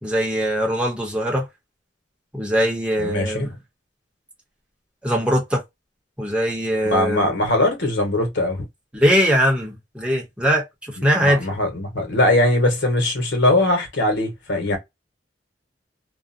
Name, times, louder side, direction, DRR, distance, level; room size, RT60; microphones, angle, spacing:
voice 1, 0.0-1.5 2.3-3.5 5.0-5.6 6.2-7.3 8.9-11.5, equal, 5° right, 0.8 m, -21 dB
voice 2, 3.0-3.5 6.9-8.6 11.0-14.8, left 1 dB, 85° left, 1.1 m, -21 dB
2.5 x 2.1 x 2.5 m
head